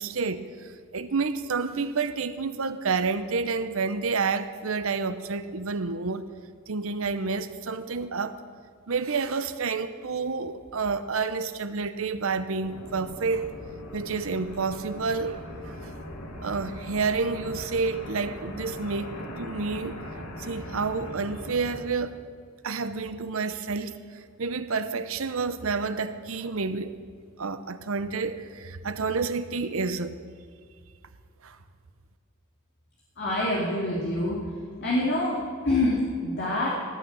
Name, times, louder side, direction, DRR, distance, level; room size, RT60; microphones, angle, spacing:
voice 1, 0.0-6.2 6.7-8.4 8.9-13.5 13.9-15.9 16.4-19.1 19.4-20.0 20.4-22.2 22.6-27.0 27.4-30.2 31.4-31.6, right 4 dB, 65° right, 12 dB, 0.8 m, -29 dB
sound 1, 12.6-21.8, left 1 dB, 80° left, 2.6 m, -40 dB
voice 2, 33.2-34.4 34.8-35.4 35.6-36.7, left 1 dB, 50° left, -5 dB, 2.6 m, -26 dB
18.0 x 6.5 x 8.7 m, 2.1 s
head